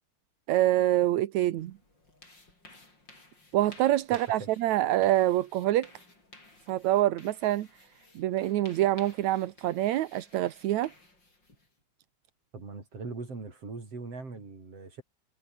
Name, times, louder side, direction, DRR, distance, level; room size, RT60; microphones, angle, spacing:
voice 1, 0.5-1.7 3.5-5.9 6.7-7.7 8.2-10.9, right 14 dB, 80° right, 2.3 m, -26 dB
sound 1, 1.6-11.8, left 2 dB, 35° left, 8.1 m, -56 dB
voice 2, 4.1-4.5 12.5-15.0, right 3 dB, 55° right, 7.1 m, -41 dB
omnidirectional pair, 3.3 m